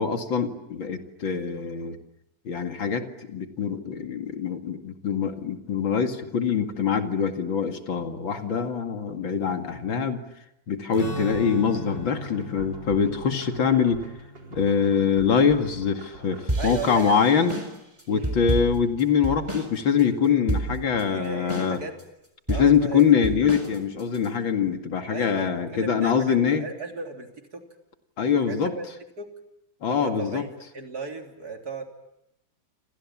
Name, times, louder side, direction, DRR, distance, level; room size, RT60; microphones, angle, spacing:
voice 1, 0.0-2.0 2.4-10.2 10.7-14.0 14.5-17.5 18.1-21.8 22.5-26.7 28.2-28.7 29.8-30.4, left 7 dB, 80° left, 5 dB, 3.0 m, -24 dB
Strum, 10.9-16.5, left 2 dB, 40° left, 5.5 m, -39 dB
sound 1, 11.3-16.5, right 2 dB, 70° right, 5.0 m, -44 dB
sound 2, 16.5-19.7 20.0-20.1 20.5-21.0 21.5-22.0 22.5-24.3, right 2 dB, 15° right, 4.2 m, -30 dB
voice 2, 16.6-17.2 18.1-18.4 21.1-22.0 22.5-23.1 25.1-27.6 28.5-28.8 29.2-29.3 29.9-31.9, right 4 dB, 50° right, 3 dB, 3.8 m, -36 dB
29.0 x 27.5 x 7.3 m, 0.83 s
omnidirectional pair, 2.1 m